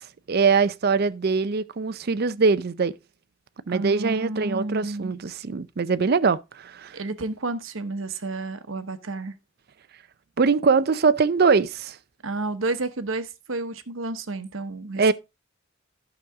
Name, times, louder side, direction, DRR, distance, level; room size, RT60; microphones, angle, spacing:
voice 1, 0.3-2.9 3.7-7.0 10.4-12.0 15.0-15.1, right 5 dB, 50° right, 0.5 m, -22 dB
voice 2, 3.7-5.1 6.9-9.3 12.2-15.1, right 2 dB, 85° right, 1.0 m, -31 dB
11.5 x 6.2 x 3.5 m
head